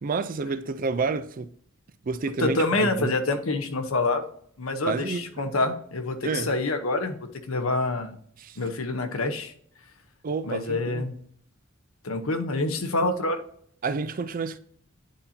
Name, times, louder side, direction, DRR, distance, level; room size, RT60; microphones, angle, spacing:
voice 1, 0.0-1.5 2.0-3.2 4.9-5.4 6.2-6.5 8.4-8.6 10.2-11.1 13.8-14.6, right 4 dB, 40° right, 0.4 m, -29 dB
voice 2, 2.4-4.2 4.6-7.2 7.5-8.2 8.6-9.5 10.4-11.1 12.0-13.4, left 2 dB, 90° left, 0.9 m, -26 dB
10.0 x 4.3 x 2.7 m
head